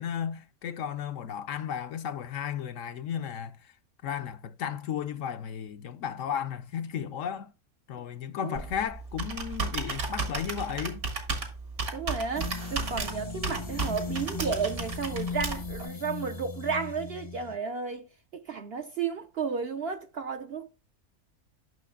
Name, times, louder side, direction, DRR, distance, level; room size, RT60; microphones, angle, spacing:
voice 1, 0.0-3.7 4.0-7.5 7.9-11.0, left 8 dB, 65° left, 0.9 m, -34 dB
Computer keyboard, 8.5-15.9, right 3 dB, 75° right, 2.2 m, -34 dB
voice 2, 11.9-18.0 18.5-20.7, right 5 dB, 60° right, 0.7 m, -33 dB
sound 1, 12.3-17.6, left 5 dB, 30° left, 0.5 m, -38 dB
10.5 x 6.2 x 2.3 m
omnidirectional pair, 1.5 m